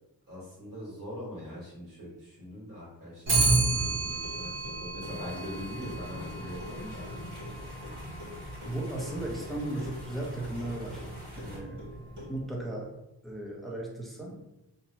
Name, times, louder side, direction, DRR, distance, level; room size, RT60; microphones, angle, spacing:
voice 1, 0.3-7.1, equal, 50° right, -7 dB, 1.4 m, -42 dB
Clock, 3.3-12.6, right 2 dB, 80° right, 1.0 m, -33 dB
sound 1, 5.0-11.6, equal, 20° right, 1.5 m, -45 dB
voice 2, 8.6-11.0 11.3-11.8 12.3-12.9 13.2-14.4, right 1 dB, ahead, -3 dB, 0.5 m, -36 dB
2.8 x 2.1 x 2.7 m, 0.90 s
wide cardioid pair, 110°, 42 cm